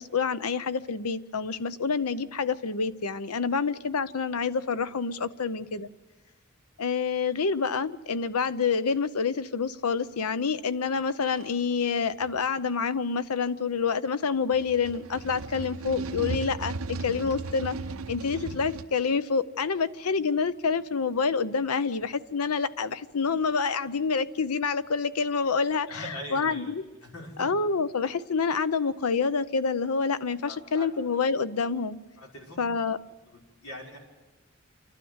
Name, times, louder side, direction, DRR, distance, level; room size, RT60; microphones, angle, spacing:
voice 1, 0.0-5.9 6.8-17.7 18.1-26.8 27.4-32.0 32.6-33.0, left 5 dB, 85° left, 14 dB, 0.7 m, -27 dB
sound 1, 11.2-11.5 12.2-12.4 14.5-18.8, right 3 dB, 70° right, 0.8 m, -36 dB
voice 2, 25.9-26.7 27.0-27.5 30.4-30.9 32.2-32.7 33.3-34.0, equal, 70° left, -2 dB, 5.7 m, -42 dB
28.0 x 12.5 x 8.0 m, 1.2 s
head